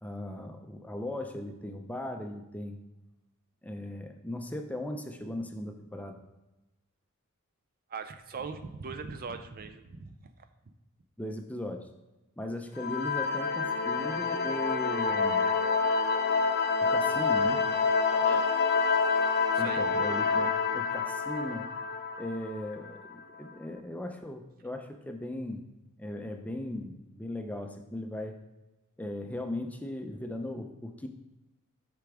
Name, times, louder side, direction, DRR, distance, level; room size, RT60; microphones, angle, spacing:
voice 1, 0.0-2.8 3.6-6.2 11.2-11.9 12.4-15.4 16.8-17.7 19.6-21.7 22.2-25.7 26.0-28.4 29.0-31.1, left 1 dB, 5° left, 4 dB, 0.5 m, -38 dB
voice 2, 7.9-10.1 18.1-18.5 19.5-19.8, right 4 dB, 45° right, 8 dB, 0.4 m, -40 dB
sound 1, 12.8-23.1, left 5 dB, 45° left, 0.6 m, -27 dB
8.2 x 5.9 x 3.5 m, 1.0 s
head